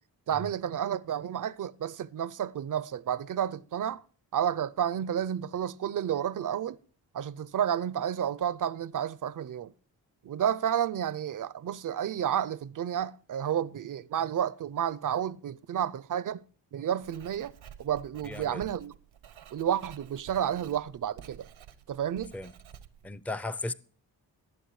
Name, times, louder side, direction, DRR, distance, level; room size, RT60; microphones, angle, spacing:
voice 1, 0.3-4.0 4.3-6.8 7.1-9.7 10.2-16.4 16.7-18.9 19.5-21.5 21.9-22.3, right 9 dB, 45° right, 0.5 m, -31 dB
Writing, 17.0-23.1, right 9 dB, 80° right, 0.9 m, -51 dB
voice 2, 18.2-18.6 20.5-20.7 22.3-22.5 23.0-23.7, left 2 dB, 5° left, 0.5 m, -36 dB
20.0 x 7.7 x 3.1 m
supercardioid pair, 40°, 46 cm